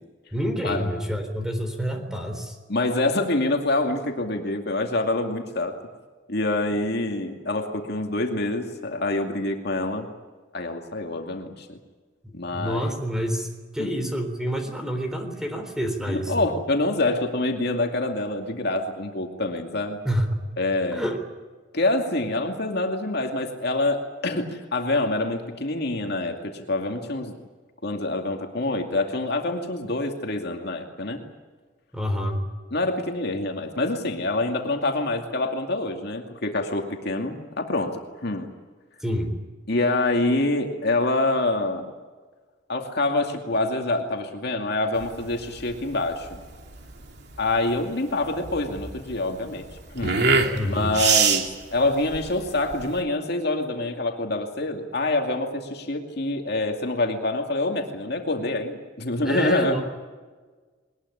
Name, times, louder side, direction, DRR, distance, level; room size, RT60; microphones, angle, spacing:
voice 1, 0.3-2.6 12.2-16.5 20.0-20.3 20.9-21.2 31.9-32.4 39.0-39.3 50.5-50.9 59.2-59.8, equal, 5° right, 6 dB, 3.8 m, -28 dB
voice 2, 2.7-5.7 6.3-10.1 10.5-11.8 12.3-13.0 13.8-13.9 16.1-20.0 20.6-21.0 21.7-27.3 27.8-31.2 32.7-38.5 39.7-41.9 42.7-46.4 47.4-49.7 49.9-50.2 50.6-51.5 51.7-59.8, left 2 dB, 55° left, 3 dB, 2.4 m, -26 dB
sound 1, 45.0-53.0, right 5 dB, 55° right, 2.7 m, -25 dB
21.5 x 20.0 x 10.0 m, 1.4 s
head